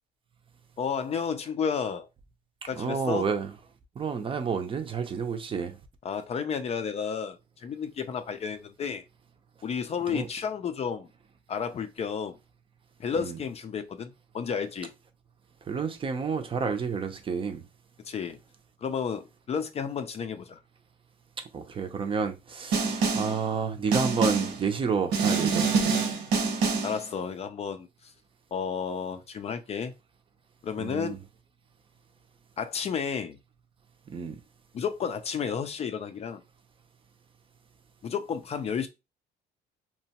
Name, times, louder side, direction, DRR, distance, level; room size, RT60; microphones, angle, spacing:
voice 1, 0.8-2.1 2.7-3.3 6.0-9.0 9.6-11.1 11.5-12.4 13.0-14.9 18.0-18.4 18.8-20.6 26.8-28.1 28.5-29.9 30.6-31.2 32.6-33.4 34.7-36.4 38.0-38.9, left 6 dB, 40° left, 0.4 m, -32 dB
voice 2, 2.8-3.5 4.0-5.8 10.1-10.3 13.2-13.4 15.7-17.6 21.5-25.7 30.8-31.2 34.1-34.4, right 5 dB, 30° right, 0.5 m, -30 dB
Snare drum, 22.7-23.4 23.9-24.6 25.1-27.0, right 4 dB, 85° right, 0.9 m, -26 dB
2.8 x 2.2 x 2.8 m
cardioid pair, 110°, 17 cm